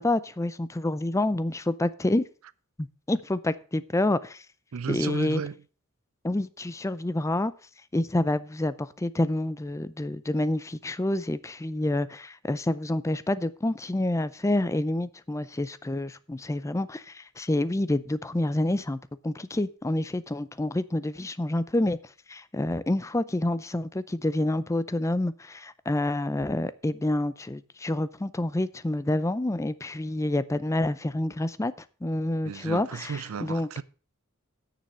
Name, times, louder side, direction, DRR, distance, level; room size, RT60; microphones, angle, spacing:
voice 1, 0.0-2.3 2.8-4.4 4.9-5.4 6.2-7.5 7.9-19.0 19.2-22.0 22.3-31.7 32.0-33.7, left 1 dB, 15° left, 0.5 m, -28 dB
voice 2, 4.7-5.6 32.4-33.8, right 6 dB, 75° right, 0.5 m, -34 dB
9.5 x 6.8 x 6.1 m
head